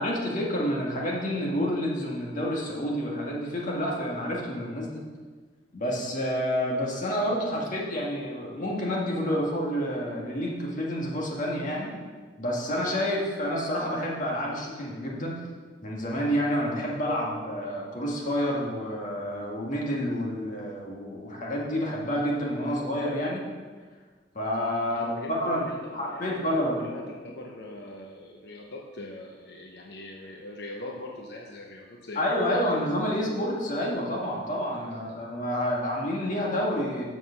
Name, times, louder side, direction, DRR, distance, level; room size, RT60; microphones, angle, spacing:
voice 1, 0.0-5.0 5.7-11.9 12.4-15.4 15.8-23.4 24.4-25.7 25.9-26.8 32.2-37.0, equal, 45° left, -3 dB, 1.9 m, -29 dB
voice 2, 24.9-32.8 34.9-35.0, left 1 dB, 65° left, -1 dB, 0.9 m, -42 dB
7.5 x 6.1 x 5.9 m, 1.5 s
head